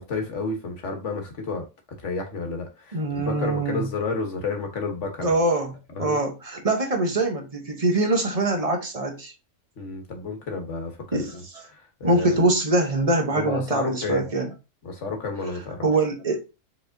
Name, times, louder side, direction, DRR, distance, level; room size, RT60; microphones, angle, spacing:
voice 1, 0.0-1.6 2.0-5.4 5.9-6.2 9.8-11.4 11.7-12.5 13.3-14.3 14.8-15.8, left 3 dB, 55° left, 1.4 m, -31 dB
voice 2, 2.9-3.9 5.2-5.7 6.0-9.3 11.1-11.3 12.0-14.5 15.8-16.4, right 2 dB, 30° right, 0.8 m, -23 dB
4.9 x 4.1 x 2.6 m
omnidirectional pair, 1.6 m